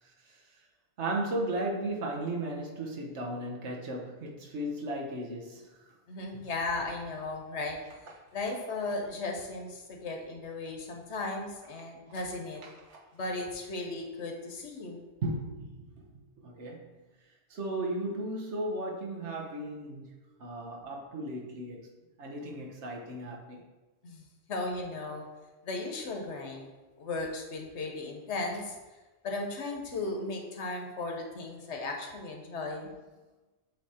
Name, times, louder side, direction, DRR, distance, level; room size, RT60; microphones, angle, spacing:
voice 1, 1.0-5.6 12.9-13.0 15.2-16.1 16.4-16.9 17.5-20.1 20.4-21.9 22.2-23.6 32.8-32.9, right 1 dB, 90° right, 1.3 m, -35 dB
voice 2, 6.1-7.8 8.3-12.6 13.1-15.0 24.0-25.3 25.6-26.7 27.0-28.7 29.2-32.9, left 2 dB, 90° left, 1.3 m, -36 dB
7.8 x 3.3 x 4.2 m
omnidirectional pair, 1.1 m